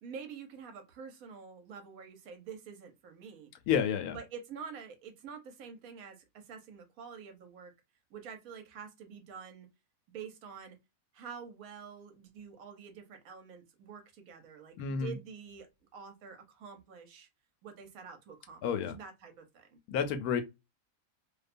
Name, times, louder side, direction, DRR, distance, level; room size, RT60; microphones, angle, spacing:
voice 1, 0.0-3.5 4.1-7.7 8.1-9.7 10.1-10.8 11.1-17.3 17.6-18.6 18.9-19.8, right 6 dB, 75° right, 1.1 m, -47 dB
voice 2, 3.7-4.2 14.8-15.1 18.6-18.9 19.9-20.4, left 7 dB, 85° left, 1.1 m, -30 dB
2.6 x 2.2 x 2.5 m
omnidirectional pair, 1.5 m